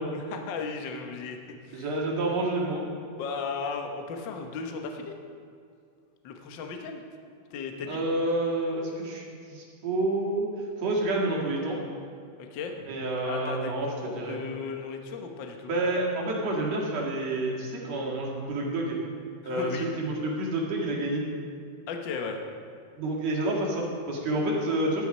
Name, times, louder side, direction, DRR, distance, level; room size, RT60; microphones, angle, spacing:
voice 1, 0.1-1.4 1.6-1.9 3.2-5.1 6.2-7.0 7.5-8.0 12.4-12.8 13.2-15.7 19.4-19.9 21.9-22.4, left 5 dB, 70° left, 4 dB, 1.1 m, -36 dB
voice 2, 1.7-2.9 7.9-10.5 10.8-11.8 12.9-14.4 15.7-19.0 19.4-21.2 23.0-25.0, right 2 dB, 60° right, -3 dB, 3.1 m, -29 dB
11.0 x 10.5 x 5.5 m, 2.3 s
omnidirectional pair, 3.6 m